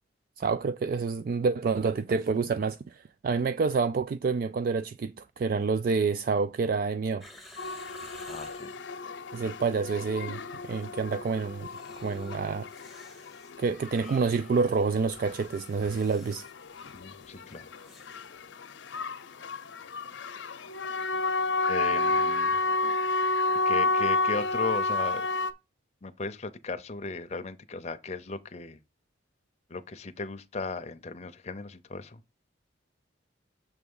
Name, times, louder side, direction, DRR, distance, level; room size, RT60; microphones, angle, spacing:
voice 1, 0.4-7.3 9.3-11.7 12.0-12.7 13.6-16.4, right 4 dB, 50° right, 0.3 m, -28 dB
sound 1, 7.2-8.8 9.6-10.3 10.5-10.9 11.5-18.2 18.4-18.5, left 1 dB, ahead, 0.8 m, -53 dB
sound 2, 7.6-25.5, left 3 dB, 85° left, 0.6 m, -31 dB
voice 2, 8.3-8.7 16.9-17.7 21.7-22.6 23.6-25.3 26.0-28.8 29.7-32.2, left 3 dB, 35° left, 0.6 m, -36 dB
7.0 x 3.4 x 5.3 m
head